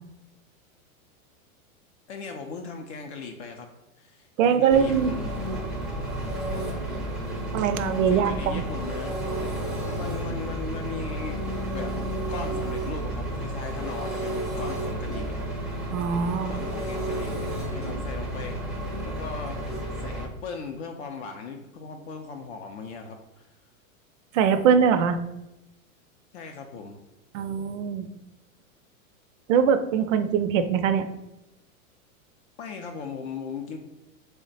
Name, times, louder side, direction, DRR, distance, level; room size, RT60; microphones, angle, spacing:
voice 1, 2.1-3.7 4.0-5.3 8.1-11.4 11.7-11.9 12.3-15.4 16.4-17.4 17.7-19.7 20.0-23.5 26.3-27.0 32.6-33.8, left 5 dB, 50° left, 4 dB, 0.5 m, -38 dB
voice 2, 4.4-5.1 7.5-8.6 15.9-16.5 24.3-25.2 27.3-28.1 29.5-31.1, right 7 dB, 65° right, 9 dB, 0.5 m, -22 dB
Engine, 4.7-20.2, right 1 dB, ahead, 0.5 m, -31 dB
3.3 x 2.1 x 3.9 m, 0.92 s
hypercardioid pair, 125°, 42 cm